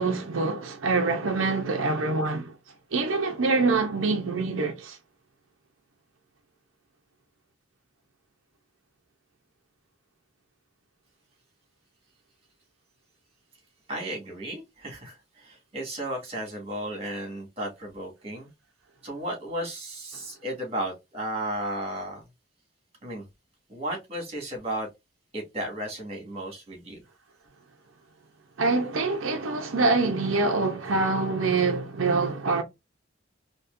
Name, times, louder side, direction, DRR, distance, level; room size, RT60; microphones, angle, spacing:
voice 1, 0.0-2.5 2.9-5.0 28.6-32.6, right 3 dB, 85° right, 0.7 m, -25 dB
voice 2, 13.9-18.5 19.0-22.2 23.0-23.2 23.7-24.9 25.3-27.0, right 1 dB, 30° right, 2.1 m, -34 dB
4.2 x 3.0 x 2.5 m
head